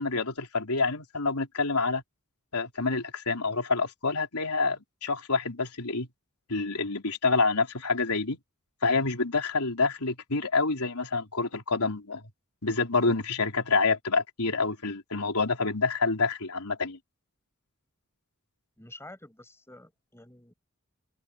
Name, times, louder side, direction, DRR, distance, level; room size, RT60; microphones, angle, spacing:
voice 1, 0.0-2.0 2.5-6.1 6.5-8.4 8.8-12.2 12.6-17.0, left 4 dB, 85° left, 3.7 m, -27 dB
voice 2, 18.8-20.5, left 1 dB, 10° left, 6.5 m, -49 dB
head